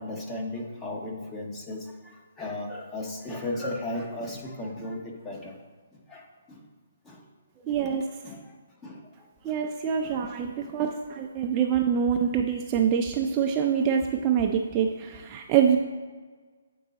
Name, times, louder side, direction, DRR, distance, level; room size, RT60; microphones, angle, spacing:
voice 1, 0.0-5.6 5.9-6.7 7.0-7.2 7.8-8.0 8.2-8.6 8.8-9.6 10.0-10.2 10.6-10.8, left 1 dB, 10° left, 0 dB, 0.8 m, -36 dB
voice 2, 7.7-8.0 9.4-15.8, right 8 dB, 20° right, 2 dB, 0.4 m, -25 dB
8.5 x 4.6 x 4.0 m, 1.4 s
hypercardioid pair, 160°, 0 cm